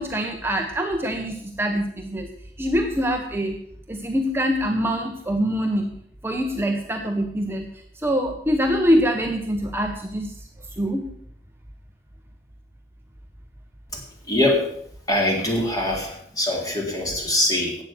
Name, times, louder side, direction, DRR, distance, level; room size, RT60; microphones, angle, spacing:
voice 1, 0.0-2.3 2.6-3.6 3.9-5.9 6.2-7.7 8.0-10.3 10.8-11.1, equal, 15° right, 3 dB, 1.0 m, -24 dB
voice 2, 13.9-14.7 15.1-17.8, left 1 dB, 20° left, 0 dB, 3.5 m, -23 dB
14.5 x 9.1 x 6.1 m, 0.70 s
head